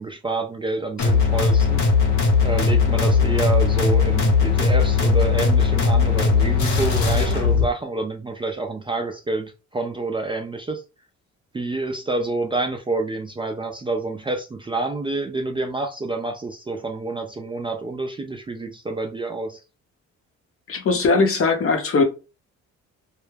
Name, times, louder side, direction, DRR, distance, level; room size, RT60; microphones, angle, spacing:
voice 1, 0.0-2.2 2.4-10.8 11.5-19.6, right 3 dB, 15° right, 0.3 m, -28 dB
sound 1, 1.0-7.7, left 5 dB, 70° left, 1.0 m, -18 dB
voice 2, 20.7-22.0, left 4 dB, 45° left, 0.8 m, -19 dB
2.3 x 2.1 x 3.2 m
cardioid pair, 90°, 30 cm